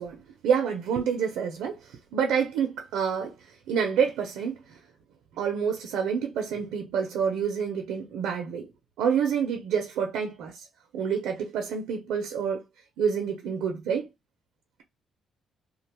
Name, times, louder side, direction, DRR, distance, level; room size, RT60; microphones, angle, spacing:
voice 1, 0.0-1.8 2.1-3.3 3.7-4.6 5.4-8.7 9.0-10.7 10.9-12.6 13.0-14.1, right 7 dB, 90° right, 0.5 m, -27 dB
2.4 x 2.2 x 2.9 m
cardioid pair, 90°, 0 cm